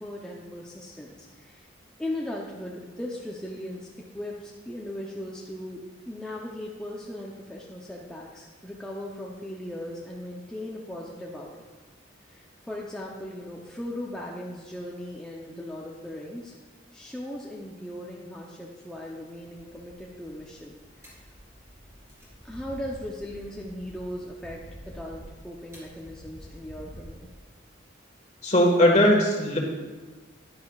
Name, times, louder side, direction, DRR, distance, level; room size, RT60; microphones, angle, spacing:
voice 1, 0.0-1.7 2.0-3.9 4.1-11.5 12.2-16.5 16.9-21.2 22.4-27.3, left 1 dB, 5° left, -4 dB, 0.6 m, -38 dB
sound 1, 19.4-27.3, equal, 15° right, 3.0 m, -48 dB
voice 2, 28.4-29.6, left 1 dB, 35° left, 0 dB, 1.6 m, -19 dB
10.5 x 10.0 x 2.4 m, 1.3 s
head